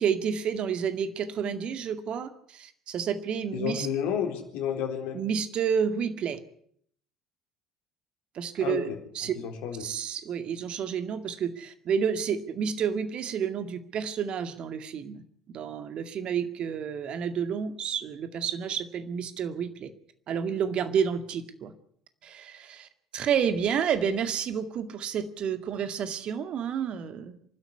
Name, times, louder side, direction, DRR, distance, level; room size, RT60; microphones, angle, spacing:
voice 1, 0.0-3.9 5.1-6.4 8.3-8.9 9.2-9.3 9.8-19.9 20.3-21.7 22.2-27.4, right 7 dB, 45° right, 10 dB, 2.1 m, -30 dB
voice 2, 3.5-5.2 8.6-9.0 9.3-9.9, left 8 dB, 60° left, 5 dB, 3.8 m, -31 dB
26.0 x 12.5 x 9.6 m, 0.65 s
figure-of-eight pair, 60°, 2 cm